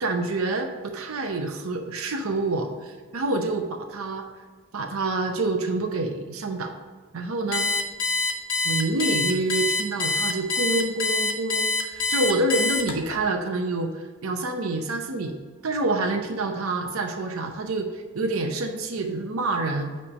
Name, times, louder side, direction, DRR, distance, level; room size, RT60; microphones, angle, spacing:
voice 1, 0.0-4.2 4.7-6.7 7.1-7.7 8.6-15.4 15.6-19.9, right 2 dB, 85° right, 4 dB, 0.7 m, -27 dB
Alarm, 7.5-13.2, left 3 dB, 70° left, 1.1 m, -25 dB
8.6 x 3.3 x 5.3 m, 1.5 s
head